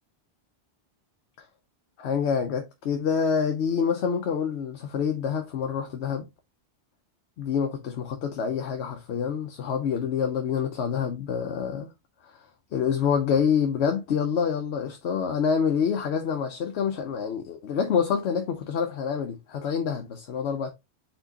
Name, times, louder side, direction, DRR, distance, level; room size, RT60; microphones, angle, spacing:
voice 1, 2.0-6.3 7.4-11.9 12.2-12.3 12.7-20.7, left 7 dB, 80° left, 0.9 m, -27 dB
4.4 x 3.8 x 2.8 m
omnidirectional pair, 1.1 m